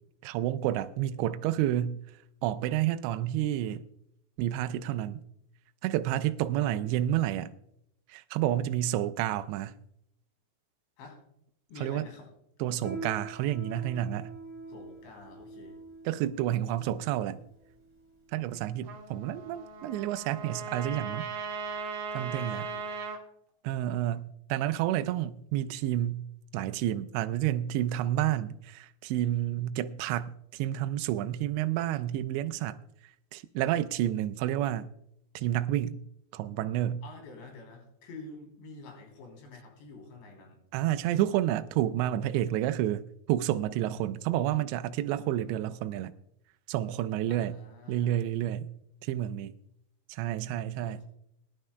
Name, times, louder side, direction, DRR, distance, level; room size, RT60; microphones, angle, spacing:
voice 1, 0.2-2.0 2.4-3.9 4.4-5.2 5.8-7.5 8.1-9.8 11.8-12.1 12.6-14.3 16.1-17.4 18.3-21.3 22.1-22.7 23.6-26.2 26.5-32.8 33.3-34.9 35.4-36.0 36.3-37.0 40.7-46.1 46.7-47.6 47.9-49.5 50.1-51.0, right 12 dB, 85° right, 2.7 m, -30 dB
voice 2, 11.7-12.3 14.7-15.8 22.2-23.0 37.0-40.6 47.3-48.2 50.8-51.0, left 3 dB, 75° left, 5.5 m, -48 dB
Piano, 12.8-22.7, right 2 dB, 5° right, 1.9 m, -46 dB
Trumpet, 18.8-23.2, right 5 dB, 60° right, 2.3 m, -38 dB
21.5 x 11.0 x 2.2 m
omnidirectional pair, 5.1 m